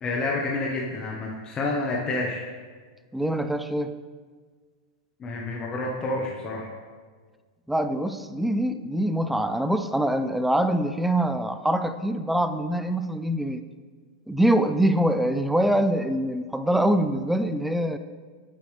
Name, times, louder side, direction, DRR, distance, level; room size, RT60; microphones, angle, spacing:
voice 1, 0.0-2.4 5.2-6.7, left 2 dB, 25° left, -2 dB, 1.0 m, -29 dB
voice 2, 3.1-3.9 7.7-13.6 14.3-18.0, right 1 dB, 5° right, 10 dB, 0.4 m, -24 dB
8.5 x 7.6 x 3.2 m, 1.5 s
hypercardioid pair, 125°, 3 cm